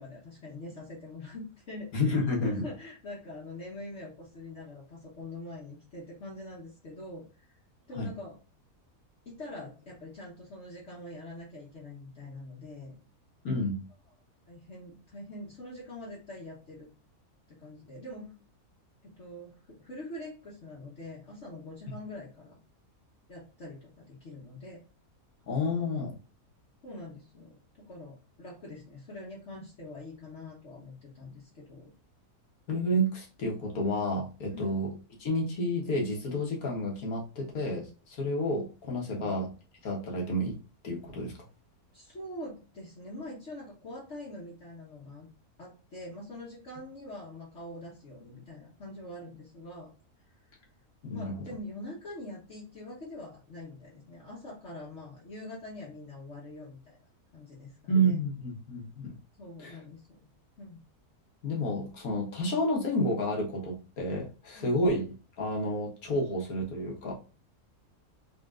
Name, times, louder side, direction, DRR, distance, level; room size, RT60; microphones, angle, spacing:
voice 1, 0.0-7.6 7.9-8.4 9.2-13.0 14.5-16.9 17.5-18.3 19.0-22.6 23.3-24.8 26.8-27.5 27.9-31.9 34.5-34.7 39.1-39.4 41.9-45.3 45.6-49.9 51.1-57.0 57.3-58.2 59.4-60.2 60.6-60.8 64.5-64.7, left 1 dB, 50° left, -5 dB, 1.4 m, -44 dB
voice 2, 1.9-2.6 8.0-8.1 13.4-13.8 25.5-26.1 32.7-34.9 35.2-39.5 39.8-40.6 40.8-41.3 51.0-51.3 57.9-59.1 59.6-59.8 61.4-65.0 65.4-67.1, equal, 70° left, -1 dB, 1.7 m, -30 dB
3.9 x 3.5 x 2.5 m, 0.33 s
omnidirectional pair, 1.6 m